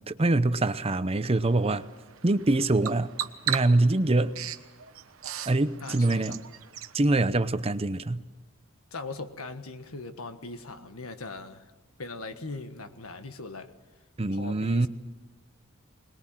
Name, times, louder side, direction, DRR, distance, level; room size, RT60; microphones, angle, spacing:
voice 1, 0.0-1.9 2.2-3.1 3.5-4.4 5.5-6.4 6.9-8.2 14.2-14.9, right 2 dB, 30° right, 13 dB, 0.7 m, -24 dB
Bird vocalization bird call bird song, 1.3-6.9, right 10 dB, 70° right, 1.1 m, -38 dB
voice 2, 5.8-6.4 8.9-11.6 12.0-13.7 14.3-14.9, left 3 dB, 85° left, 9 dB, 1.5 m, -40 dB
22.0 x 20.5 x 7.5 m, 1.2 s
head